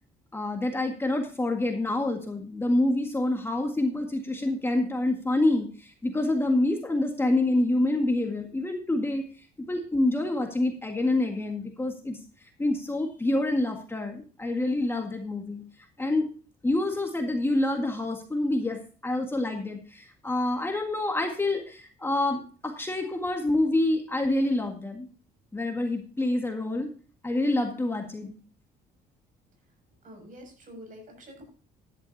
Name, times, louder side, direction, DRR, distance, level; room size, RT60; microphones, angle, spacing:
voice 1, 0.3-9.2 9.7-12.2 12.6-15.6 16.0-16.3 16.6-25.1 25.5-26.9 27.2-28.4, left 2 dB, 15° left, 3 dB, 1.8 m, -27 dB
voice 2, 30.0-31.4, equal, 50° right, 4 dB, 6.7 m, -47 dB
14.0 x 11.0 x 2.8 m, 0.38 s
cardioid pair, 110°, 17 cm